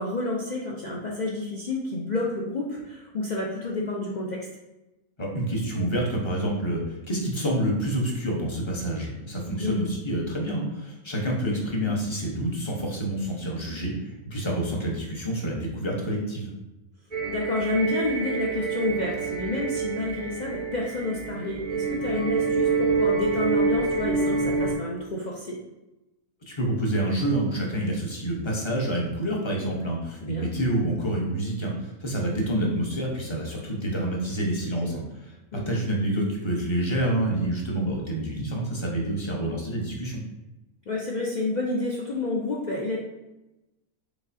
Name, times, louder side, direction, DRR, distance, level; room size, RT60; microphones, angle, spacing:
voice 1, 0.0-4.5 9.6-9.8 17.3-25.6 30.2-30.5 34.8-35.0 35.5-35.7 40.9-43.0, left 2 dB, 80° left, -3 dB, 0.4 m, -29 dB
voice 2, 5.2-16.5 26.5-35.4 35.7-40.2, right 1 dB, 25° left, -2 dB, 0.7 m, -28 dB
sound 1, 17.1-24.7, right 4 dB, 45° right, 0.7 m, -27 dB
4.9 x 3.9 x 2.6 m, 0.99 s
omnidirectional pair, 1.6 m